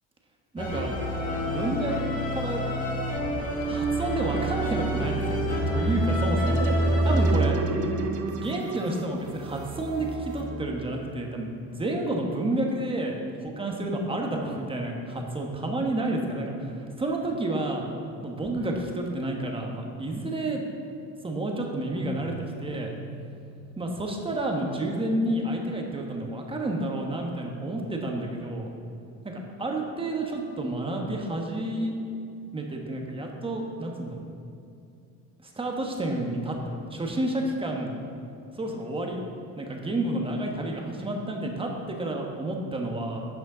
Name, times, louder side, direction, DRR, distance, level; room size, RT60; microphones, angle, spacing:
voice 1, 0.5-0.9 1.4-2.6 3.6-7.6 8.3-17.8 18.2-20.6 21.2-22.3 22.6-22.9 23.8-28.7 29.2-31.9 32.5-34.3 35.6-37.9 38.5-39.2 39.6-43.2, right 1 dB, 15° right, 1 dB, 1.2 m, -30 dB
sound 1, 0.6-7.3, equal, 25° left, 2.0 m, -27 dB
sound 2, 5.7-11.1, right 3 dB, 70° right, 0.9 m, -34 dB
Keyboard (musical), 22.0-25.5, right 2 dB, 70° left, 1.0 m, -46 dB
11.0 x 6.2 x 3.9 m, 2.5 s
cardioid pair, 110°, 32 cm